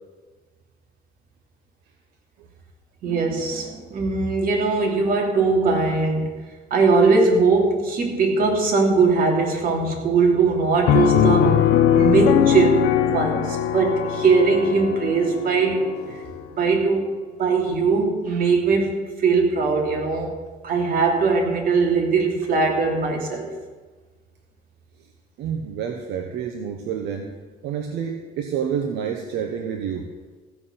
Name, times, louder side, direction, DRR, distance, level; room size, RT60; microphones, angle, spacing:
voice 1, 3.0-6.4 6.7-11.6 11.9-16.2 16.5-20.4 20.6-23.5, right 4 dB, 60° right, 1 dB, 2.9 m, -20 dB
Piano, 10.9-16.4, left 10 dB, 85° left, 0.9 m, -20 dB
voice 2, 25.4-27.3 27.6-30.1, right 7 dB, 85° right, 4 dB, 1.1 m, -28 dB
15.0 x 6.0 x 8.0 m, 1.3 s
cardioid pair, 110°, 17 cm